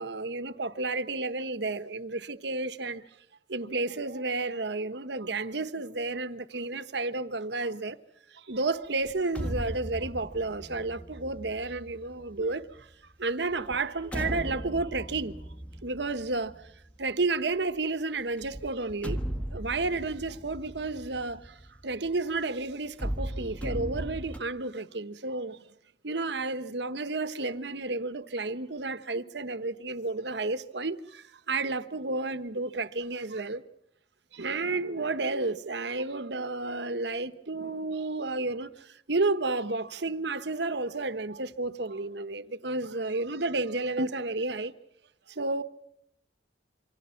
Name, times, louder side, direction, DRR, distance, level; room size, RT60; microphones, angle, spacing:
voice 1, 0.0-3.1 3.5-8.0 8.3-12.9 13.2-15.4 15.8-16.7 17.0-25.7 26.0-33.6 34.3-44.7 45.3-45.6, right 3 dB, 65° right, 1.2 m, -31 dB
sound 1, 9.1-12.8 13.5-17.1 18.4-22.4 22.9-24.4, right 1 dB, 5° left, 1.5 m, -37 dB
27.5 x 25.0 x 5.8 m
head